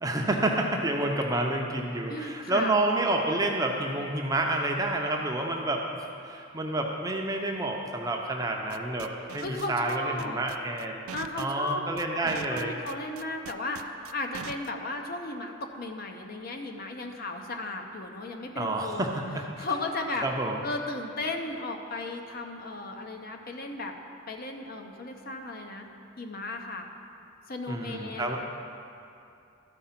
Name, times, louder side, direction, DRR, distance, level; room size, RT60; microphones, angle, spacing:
voice 1, 0.0-11.0 11.4-12.7 18.6-19.6 20.2-20.5 27.7-28.4, right 2 dB, 15° right, 1 dB, 0.6 m, -29 dB
voice 2, 2.1-2.7 9.4-10.4 11.1-11.8 12.1-19.1 19.6-20.3 20.6-23.9 24.3-25.9 26.2-26.9 27.5-28.4, left 2 dB, 45° left, 4 dB, 0.7 m, -35 dB
sound 1, 8.7-14.7, right 8 dB, 80° right, 0.4 m, -41 dB
13.0 x 4.7 x 5.8 m, 2.6 s
head